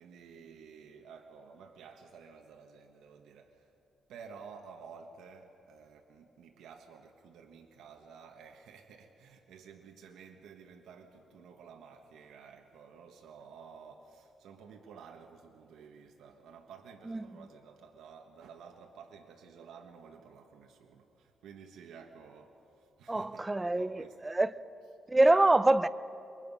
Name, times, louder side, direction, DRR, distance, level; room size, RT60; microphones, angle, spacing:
voice 1, 0.0-3.7 4.1-24.2, right 6 dB, 90° right, 1.4 m, -52 dB
voice 2, 23.1-24.5 25.1-25.9, right 2 dB, 20° right, 0.6 m, -25 dB
27.5 x 23.5 x 5.6 m
cardioid pair, 90°, 0 cm